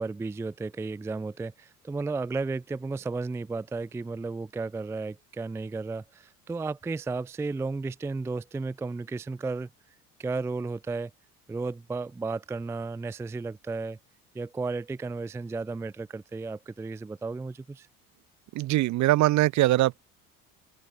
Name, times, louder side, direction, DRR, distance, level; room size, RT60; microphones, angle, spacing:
voice 1, 0.0-9.7 10.2-11.1 11.5-14.0 14.3-17.9, right 3 dB, 5° right, 0.4 m, -33 dB
voice 2, 18.5-20.0, right 16 dB, 45° right, 0.7 m, -22 dB
open air
hypercardioid pair, 65°, 42 cm